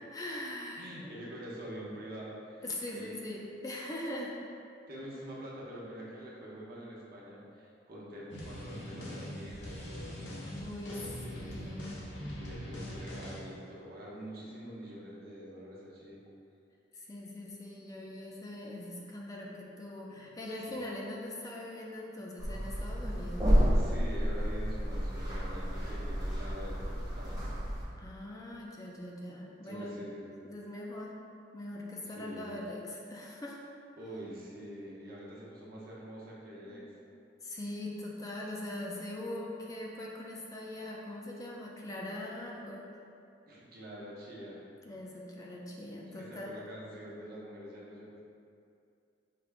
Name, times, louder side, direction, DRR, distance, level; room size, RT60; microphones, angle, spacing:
voice 1, 0.1-1.3 2.6-4.3 10.6-11.0 11.3-12.0 16.9-23.5 28.0-30.0 30.4-31.2 31.5-33.6 36.7-36.9 37.4-42.9 44.9-46.5, left 1 dB, 20° left, -3 dB, 0.3 m, -41 dB
voice 2, 0.8-2.6 2.9-3.1 4.9-10.2 10.9-11.5 12.4-16.2 20.1-20.2 20.7-20.8 23.7-27.4 29.6-30.3 32.1-32.6 34.0-36.8 43.5-44.6 46.1-48.2, equal, 55° right, -6 dB, 0.9 m, -45 dB
sound 1, 8.3-13.5, equal, 65° left, 0.8 m, -42 dB
sound 2, 22.4-27.8, equal, 20° right, 0.8 m, -30 dB
5.0 x 2.4 x 3.4 m, 2.5 s
head